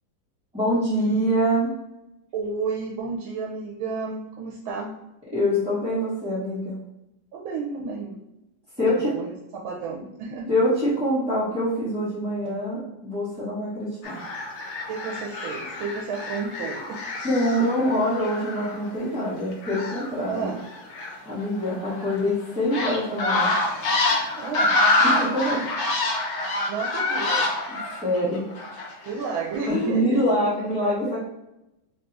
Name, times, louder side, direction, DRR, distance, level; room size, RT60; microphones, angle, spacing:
voice 1, 0.5-1.7 5.3-6.8 8.8-9.1 10.5-14.2 17.2-20.5 21.2-23.5 25.0-25.6 27.9-28.4 29.7-31.2, equal, 5° right, -12 dB, 0.7 m, -24 dB
voice 2, 2.3-5.0 7.3-8.2 8.9-10.5 14.9-17.0 20.3-20.6 24.4-24.8 26.7-27.5 29.0-30.2 30.8-31.2, right 4 dB, 90° right, 0 dB, 1.4 m, -32 dB
sound 1, 14.0-18.9 19.5-22.3 22.7-29.1 29.5-29.7, left 2 dB, 60° left, 0.7 m, -26 dB
3.5 x 2.4 x 3.9 m, 0.91 s
omnidirectional pair, 2.1 m